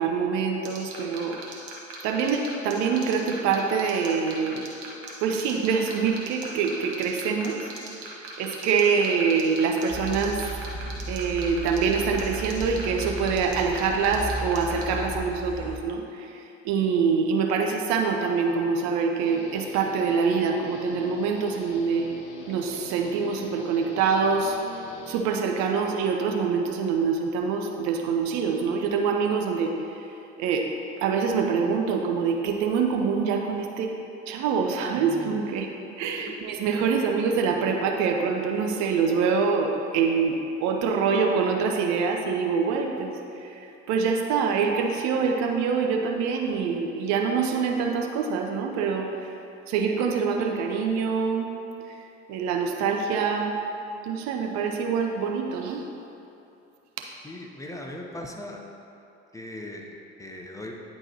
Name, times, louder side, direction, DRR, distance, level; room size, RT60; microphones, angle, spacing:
voice 1, 0.0-1.4 2.0-4.7 5.2-7.6 8.4-10.4 11.1-16.3 16.6-22.1 22.5-24.6 25.1-29.7 30.4-30.7 31.0-33.9 34.3-35.7 36.0-43.5 43.9-49.3 49.7-51.5 52.3-53.6 54.0-55.8, right 5 dB, 55° right, 2 dB, 0.7 m, -25 dB
sound 1, 0.6-14.8, right 5 dB, 70° right, 1.2 m, -39 dB
sound 2, 9.9-15.8, equal, 35° left, 1.2 m, -35 dB
Guitar, 19.2-25.8, left 4 dB, 85° left, 0.6 m, -43 dB
voice 2, 57.2-58.6 59.3-60.7, left 1 dB, 10° left, 0 dB, 0.7 m, -39 dB
9.8 x 4.4 x 2.8 m, 2.8 s
figure-of-eight pair, 60°, 33 cm